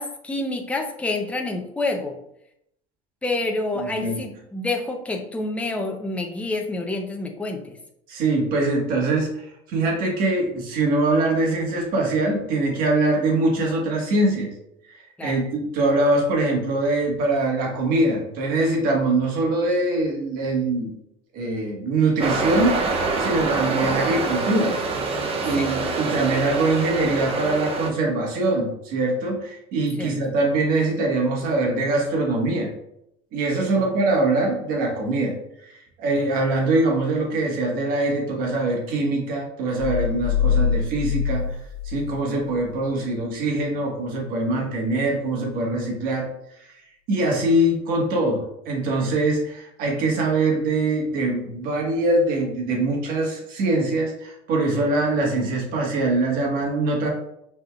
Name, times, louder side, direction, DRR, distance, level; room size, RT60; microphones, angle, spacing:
voice 1, 0.0-2.2 3.2-7.8 15.2-15.4 25.6-25.7 30.0-30.1, left 2 dB, 10° left, 2 dB, 0.6 m, -28 dB
voice 2, 3.7-4.1 8.1-14.5 14.9-20.9 21.3-22.8 23.2-24.8 25.4-32.7 33.3-35.4 35.6-41.6 41.8-46.3 46.6-46.7 47.1-57.1, right 2 dB, 65° right, 0 dB, 1.5 m, -23 dB
sound 1, 22.2-27.9, right 3 dB, 35° right, 0.7 m, -25 dB
sound 2, 39.8-42.8, left 7 dB, 70° left, 0.8 m, -24 dB
5.2 x 3.5 x 2.4 m, 0.78 s
supercardioid pair, 105°, 16 cm